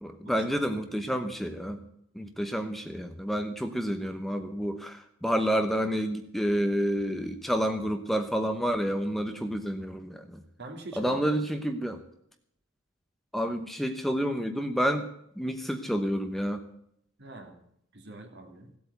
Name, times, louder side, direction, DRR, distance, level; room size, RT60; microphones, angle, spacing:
voice 1, 0.0-1.8 2.1-10.4 11.0-12.0 13.3-15.1 15.4-16.6, equal, ahead, 6 dB, 0.9 m, -29 dB
voice 2, 0.8-1.1 10.6-11.4 17.2-17.5 17.9-18.7, right 2 dB, 55° right, 4 dB, 2.8 m, -44 dB
16.5 x 8.5 x 8.0 m, 0.72 s
head